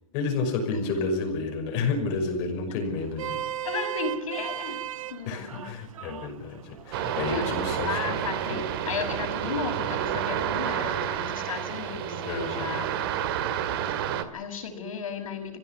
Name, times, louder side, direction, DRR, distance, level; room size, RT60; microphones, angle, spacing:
voice 1, 0.1-3.4 5.3-8.2 8.5-8.6 12.2-12.9, left 3 dB, 30° left, 4 dB, 5.9 m, -30 dB
Vehicle horn car horn honking, 2.9-9.3, right 11 dB, 75° right, 1.1 m, -38 dB
voice 2, 3.6-4.8 5.1-5.7 7.2-13.0 14.1-15.6, left 5 dB, 70° left, -4 dB, 5.2 m, -35 dB
sound 1, 6.9-14.2, right 10 dB, 45° right, 2.1 m, -30 dB
24.5 x 16.0 x 8.6 m, 0.87 s
hypercardioid pair, 165°, 18 cm